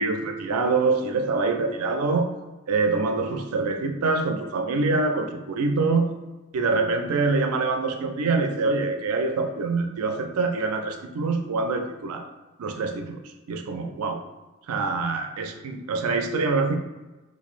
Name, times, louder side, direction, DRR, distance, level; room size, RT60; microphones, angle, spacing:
voice 1, 0.0-2.3 2.7-6.1 6.5-12.3 12.6-13.2 13.5-14.2 14.7-16.8, right 3 dB, 90° right, 5 dB, 0.5 m, -25 dB
3.9 x 3.0 x 2.5 m, 1.1 s
head